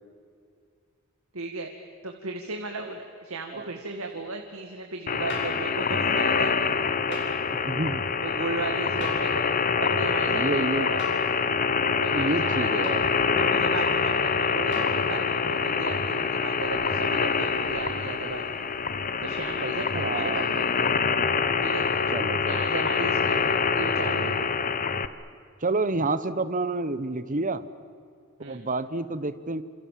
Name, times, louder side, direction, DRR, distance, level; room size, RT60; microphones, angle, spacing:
voice 1, 1.3-1.7 2.0-6.5 7.1-7.2 8.2-9.5 9.8-11.0 12.0-13.0 13.3-18.7 19.2-20.7 21.6-21.9 22.4-24.4 28.4-28.6, right 3 dB, 80° right, 3 dB, 2.1 m, -35 dB
sound 1, 3.9-6.5 6.8-12.0 12.2-14.3 14.7-14.8 16.9-19.4, equal, 5° right, 4.9 m, -55 dB
sound 2, 5.1-25.1, left 5 dB, 40° left, 1.0 m, -25 dB
sound 3, 5.3-5.6 7.1-7.3 9.0-9.4 11.0-11.3 12.8-13.0 14.7-15.1 16.6-16.7, left 4 dB, 55° left, 6.5 m, -36 dB
voice 2, 7.6-8.1 9.7-10.9 12.1-13.1 19.9-20.4 22.1-22.7 25.6-27.6 28.5-29.6, right 2 dB, 40° right, 13 dB, 1.1 m, -29 dB
28.0 x 27.5 x 7.7 m, 2.3 s
head